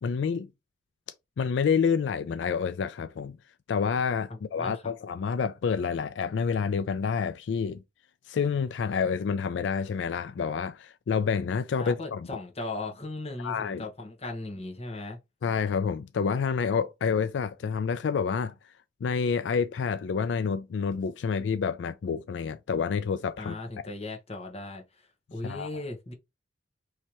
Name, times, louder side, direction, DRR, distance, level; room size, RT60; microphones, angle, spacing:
voice 1, 0.0-0.5 1.4-3.4 3.7-7.8 8.3-12.2 13.4-13.8 15.4-18.5 19.0-23.6 25.4-25.7, left 6 dB, 85° left, 0.3 m, -28 dB
voice 2, 4.3-4.9 11.8-15.2 23.4-26.1, left 2 dB, 35° left, 1.1 m, -37 dB
3.2 x 2.8 x 4.5 m
head